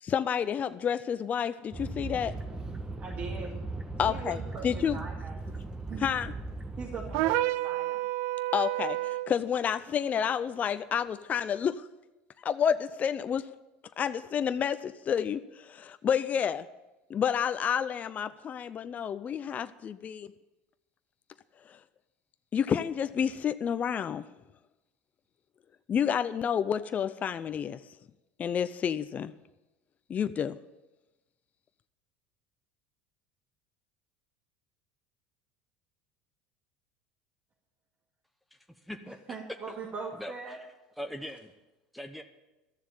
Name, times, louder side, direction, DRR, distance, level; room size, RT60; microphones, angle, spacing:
voice 1, 0.0-2.4 4.0-4.4 4.6-5.0 6.0-6.3 8.5-11.8 12.4-13.5 14.0-16.7 17.1-20.3 21.7-21.8 22.5-24.2 25.9-27.8 28.4-29.3 30.1-30.6, left 8 dB, 35° left, 12 dB, 0.5 m, -29 dB
sound 1, 1.7-7.3, right 2 dB, 15° right, 1.3 m, -38 dB
voice 2, 3.0-3.6 4.0-5.3 5.9-6.1 6.8-8.0 39.3-40.6, right 4 dB, 40° right, -2 dB, 2.3 m, -40 dB
sound 2, 7.1-9.3, right 16 dB, 70° right, 0.4 m, -29 dB
voice 3, 38.5-39.2 40.1-40.6 41.0-41.5 41.9-42.2, equal, ahead, 4 dB, 1.0 m, -41 dB
13.5 x 7.1 x 8.9 m, 1.1 s
supercardioid pair, 90°, 4 cm